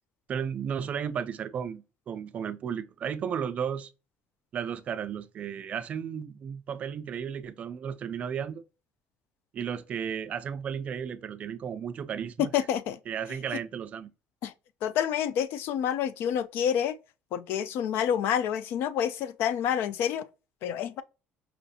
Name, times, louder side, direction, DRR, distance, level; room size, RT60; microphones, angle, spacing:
voice 1, 0.3-3.9 4.5-8.6 9.5-12.5 13.1-14.1, right 7 dB, 35° right, 0.3 m, -34 dB
voice 2, 12.4-13.0 14.4-14.5 14.8-17.0 17.3-20.3 20.6-21.0, left 9 dB, 60° left, 0.4 m, -28 dB
5.5 x 2.4 x 2.7 m
cardioid pair, 175°, 4 cm